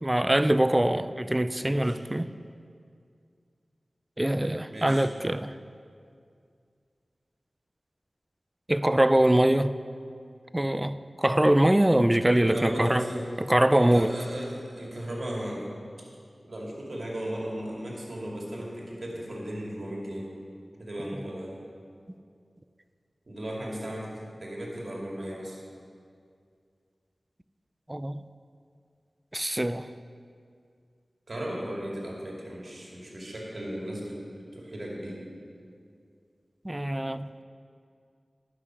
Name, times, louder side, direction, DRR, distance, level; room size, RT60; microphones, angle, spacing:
voice 1, 0.0-2.3 4.2-5.6 8.7-9.7 10.5-13.0 13.4-14.1 27.9-28.2 29.3-29.9 36.6-37.4, right 1 dB, 20° right, 13 dB, 0.4 m, -23 dB
voice 2, 1.6-2.0 4.7-5.1 12.3-13.3 13.8-15.7 16.4-20.3 20.8-21.6 23.3-24.1 24.4-25.6 31.3-34.2 34.5-35.2, right 1 dB, 60° right, -3 dB, 2.4 m, -36 dB
11.0 x 6.1 x 6.0 m, 2.3 s
cardioid pair, 40°, 0 cm